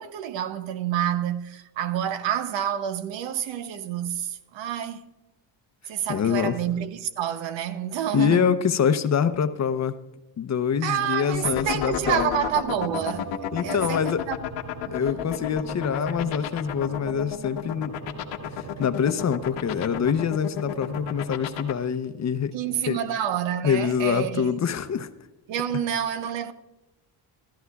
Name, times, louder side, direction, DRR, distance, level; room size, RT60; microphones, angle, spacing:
voice 1, 0.0-5.0 5.9-8.5 10.8-13.3 13.6-14.3 14.9-15.0 22.5-24.5 25.5-26.5, right 9 dB, 80° right, 0.8 m, -28 dB
voice 2, 6.1-6.6 8.1-10.0 10.4-12.5 13.5-14.2 14.9-17.9 18.6-22.5 22.9-23.0 23.6-25.1, left 7 dB, 40° left, 0.7 m, -25 dB
sound 1, 11.3-21.7, left 9 dB, 85° left, 1.2 m, -30 dB
14.0 x 13.5 x 2.3 m
cardioid pair, 100°, 44 cm